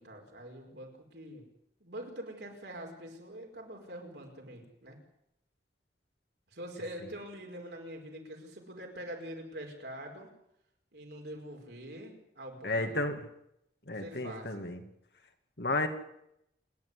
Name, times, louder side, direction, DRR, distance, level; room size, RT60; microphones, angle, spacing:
voice 1, 0.0-1.5 1.8-5.0 6.5-10.3 10.9-13.1 14.0-14.6, equal, 75° right, 1 dB, 5.2 m, -44 dB
voice 2, 12.6-13.2 13.9-14.8 15.6-15.9, left 2 dB, 65° left, 6 dB, 2.3 m, -32 dB
28.0 x 10.5 x 9.7 m, 0.79 s
head